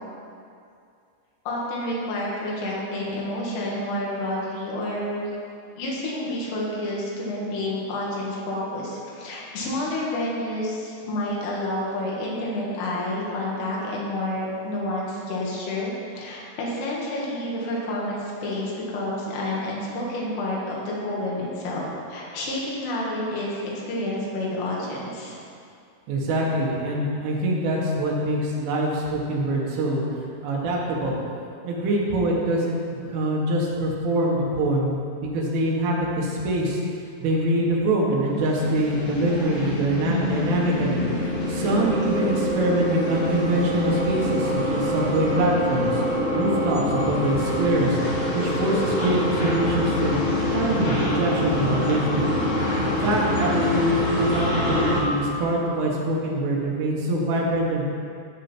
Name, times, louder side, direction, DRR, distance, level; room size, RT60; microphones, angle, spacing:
voice 1, 1.5-5.2 5.8-21.8 22.1-23.6 23.9-25.4, left 1 dB, 85° left, -5 dB, 4.7 m, -29 dB
voice 2, 26.1-30.1 30.4-31.2 31.6-36.8 37.2-41.0 41.5-46.0 46.4-48.0 48.3-50.2 50.5-52.3 52.8-57.8, right 1 dB, 80° right, -3 dB, 4.3 m, -24 dB
sound 1, 38.3-55.0, left 1 dB, 45° left, 3.0 m, -25 dB
16.0 x 7.3 x 4.6 m, 2.4 s
omnidirectional pair, 5.6 m